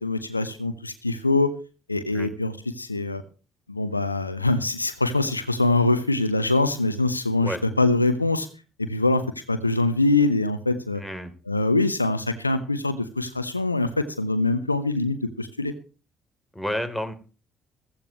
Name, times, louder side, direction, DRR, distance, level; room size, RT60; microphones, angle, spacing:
voice 1, 0.0-1.5 1.9-3.2 3.7-8.5 8.8-11.0 11.5-15.7, left 2 dB, 85° left, 12 dB, 0.8 m, -24 dB
voice 2, 11.0-11.3 16.5-17.1, left 1 dB, ahead, 6 dB, 3.2 m, -30 dB
15.0 x 15.0 x 3.1 m, 0.35 s
figure-of-eight pair, 45°, 0 cm